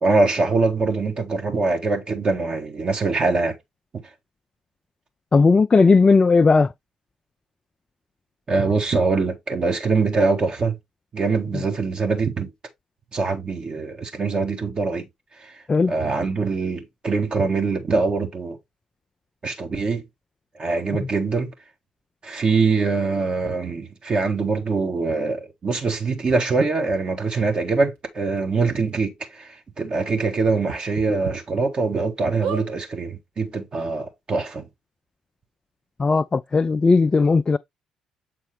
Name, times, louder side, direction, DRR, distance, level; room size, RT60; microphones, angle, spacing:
voice 1, 0.0-3.6 8.5-10.8 11.1-12.5 13.1-15.0 15.4-15.6 15.9-18.6 19.4-20.0 20.6-21.5 22.2-34.6, right 4 dB, 40° right, 1.8 m, -23 dB
voice 2, 5.3-6.7 11.5-11.6 15.7-15.9 21.0-21.1 36.0-37.6, left 4 dB, 30° left, 0.4 m, -17 dB
sound 1, 26.3-26.4 26.9-27.0 27.9-28.0 28.4-28.5 28.9-29.0 30.6-31.3 31.8-31.9 32.4-32.7 33.5-33.6 33.8-33.9, right 6 dB, 75° right, 1.6 m, -32 dB
7.7 x 4.1 x 3.3 m
hypercardioid pair, 45°, 3 cm